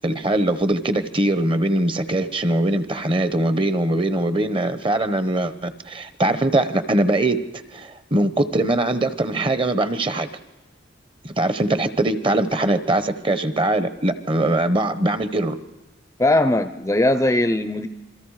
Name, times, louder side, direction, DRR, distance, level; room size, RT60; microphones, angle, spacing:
voice 1, 0.0-7.4 7.7-10.3 11.2-15.6, right 1 dB, 25° right, 12 dB, 1.0 m, -21 dB
voice 2, 16.2-17.9, left 1 dB, 15° left, 11 dB, 0.6 m, -19 dB
28.0 x 22.5 x 4.9 m, 1.1 s
head